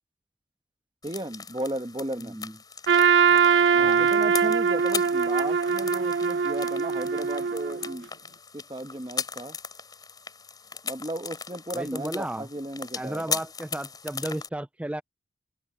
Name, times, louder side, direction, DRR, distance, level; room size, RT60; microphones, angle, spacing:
sound 1, 1.0-14.5, left 6 dB, 20° left, 5.2 m, -38 dB
voice 1, 1.0-2.4 3.7-8.1 8.5-9.6 10.8-13.4, right 1 dB, 25° right, 1.3 m, -35 dB
voice 2, 2.1-2.6 3.8-4.1 11.7-12.5 13.0-15.0, right 1 dB, 5° right, 0.3 m, -34 dB
Trumpet, 2.9-7.9, right 6 dB, 75° right, 0.6 m, -22 dB
open air
head